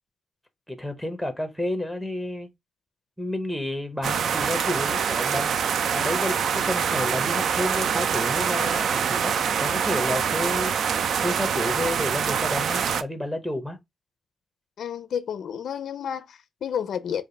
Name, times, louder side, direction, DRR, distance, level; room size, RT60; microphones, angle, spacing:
voice 1, 0.7-2.5 3.2-5.5 5.9-10.7 11.2-13.8, left 1 dB, 5° right, 0.6 m, -30 dB
sound 1, 4.0-13.0, right 7 dB, 75° right, 0.3 m, -25 dB
voice 2, 14.8-17.3, left 8 dB, 75° left, 0.4 m, -31 dB
3.3 x 2.4 x 3.7 m
wide cardioid pair, 140°, 0 cm